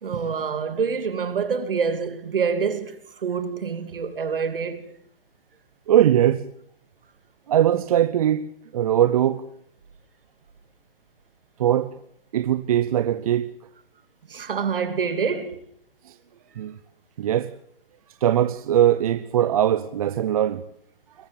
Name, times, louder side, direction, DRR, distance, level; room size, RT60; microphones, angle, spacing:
voice 1, 0.0-4.9 14.3-15.6, right 6 dB, 65° right, 2.8 m, -26 dB
voice 2, 5.9-6.5 7.5-8.5 8.7-9.4 11.6-11.9 12.3-13.5 16.1-16.2 16.6-16.8 17.2-17.5 18.2-20.6, right 11 dB, 40° right, 0.8 m, -20 dB
21.5 x 14.5 x 8.8 m
hypercardioid pair, 150°, 29 cm